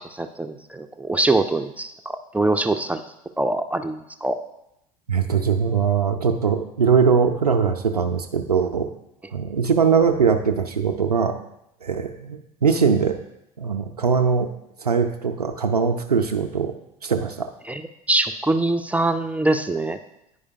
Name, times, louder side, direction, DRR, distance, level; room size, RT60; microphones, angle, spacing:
voice 1, 0.0-3.0 3.4-4.4 17.7-17.8 18.1-20.0, right 2 dB, 5° right, 7 dB, 0.3 m, -23 dB
voice 2, 5.1-8.9 9.3-11.3 11.8-13.2 13.6-14.5 14.8-16.7 17.0-17.5, right 6 dB, 85° right, 6 dB, 0.4 m, -21 dB
9.8 x 4.8 x 2.7 m, 0.84 s
figure-of-eight pair, 70°, 19 cm